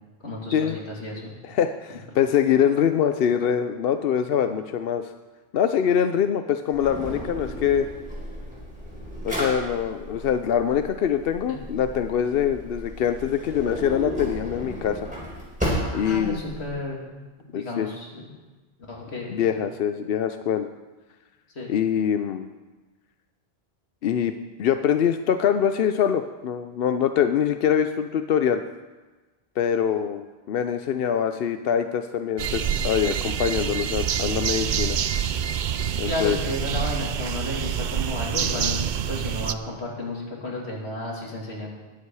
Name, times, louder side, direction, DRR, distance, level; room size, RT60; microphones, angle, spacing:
voice 1, 0.2-1.3 11.5-11.6 15.8-17.0 17.5-18.3 18.9-19.5 21.5-21.7 36.1-41.7, left 2 dB, 85° left, -3 dB, 3.1 m, -32 dB
voice 2, 1.5-5.1 5.5-7.9 9.2-15.0 15.9-16.4 17.5-17.9 19.3-20.7 21.7-22.5 24.0-24.3 24.6-28.6 29.6-35.0 36.0-36.4, left 8 dB, 70° left, 8 dB, 0.8 m, -24 dB
Drawer open or close, 6.7-16.7, equal, 5° right, 4.9 m, -34 dB
sound 1, 32.4-39.5, right 8 dB, 55° right, 0.6 m, -27 dB
20.0 x 8.4 x 4.8 m, 1.3 s
omnidirectional pair, 1.1 m